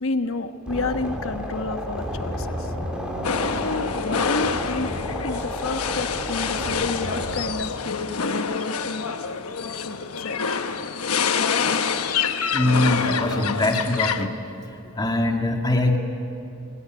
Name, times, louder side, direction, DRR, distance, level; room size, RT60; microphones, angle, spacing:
voice 1, 0.0-2.7 3.6-4.9 5.2-9.1 9.7-10.4 11.4-11.5, left 3 dB, 65° left, 8 dB, 1.2 m, -30 dB
sound 1, 0.7-7.4, equal, 5° right, 3.5 m, -31 dB
sound 2, 3.2-14.3, left 6 dB, 90° left, 1.1 m, -26 dB
voice 2, 12.5-14.3 14.9-16.0, left 2 dB, 20° left, 2 dB, 2.2 m, -22 dB
25.0 x 19.5 x 9.3 m, 2.7 s
head